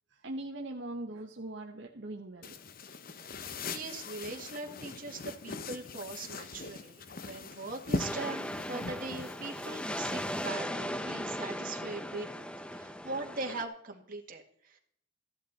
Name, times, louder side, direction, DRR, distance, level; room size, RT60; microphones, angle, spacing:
voice 1, 0.1-2.6, right 1 dB, 65° right, 1 dB, 1.2 m, -41 dB
sound 1, 2.4-10.5, left 3 dB, 50° left, 0.8 m, -41 dB
voice 2, 3.3-12.3 12.7-14.8, right 3 dB, 45° right, 3 dB, 2.0 m, -41 dB
sound 2, 8.0-13.6, equal, 5° left, 0.6 m, -37 dB
14.5 x 11.0 x 4.2 m, 0.68 s
head